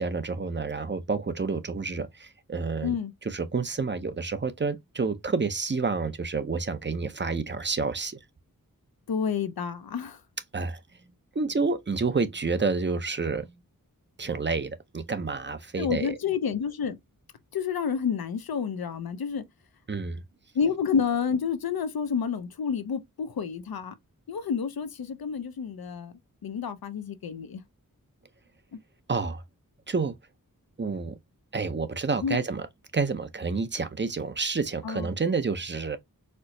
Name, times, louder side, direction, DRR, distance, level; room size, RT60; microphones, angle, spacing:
voice 1, 0.0-2.9 3.2-8.2 10.5-10.8 11.3-13.6 14.2-16.2 19.9-20.2 29.1-29.4 29.9-30.2 30.8-31.2 31.5-32.7 32.9-36.0, right 4 dB, 30° right, 0.5 m, -29 dB
voice 2, 2.8-3.1 9.1-10.2 15.8-17.0 17.5-19.4 20.5-23.9 24.3-26.1 26.4-27.6 28.7-28.8 32.2-32.4 34.8-35.1, left 6 dB, 90° left, 0.5 m, -29 dB
4.3 x 2.0 x 2.6 m
wide cardioid pair, 45°, 35 cm